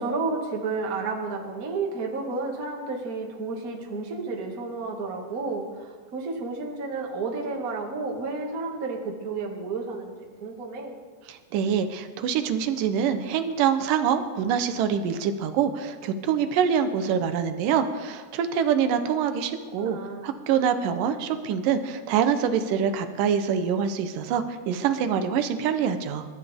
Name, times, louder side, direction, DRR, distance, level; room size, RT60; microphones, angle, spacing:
voice 1, 0.0-10.9 19.8-20.3, right 3 dB, 40° right, 0 dB, 1.3 m, -31 dB
voice 2, 11.3-26.3, right 7 dB, 80° right, 8 dB, 2.0 m, -25 dB
28.0 x 13.0 x 3.6 m, 1.5 s
omnidirectional pair, 5.1 m